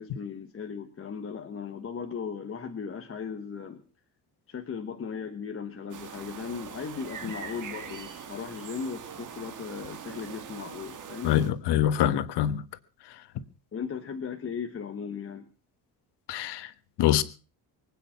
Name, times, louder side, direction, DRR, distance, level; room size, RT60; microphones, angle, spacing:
voice 1, 0.0-3.8 4.5-11.3 13.7-15.5, left 6 dB, 35° left, 1.3 m, -37 dB
sound 1, 5.9-11.5, right 7 dB, 50° right, 1.9 m, -42 dB
voice 2, 11.2-12.6 16.3-16.7 17.0-17.2, left 11 dB, 85° left, 1.4 m, -24 dB
24.0 x 9.1 x 5.8 m
cardioid pair, 165°, 40 cm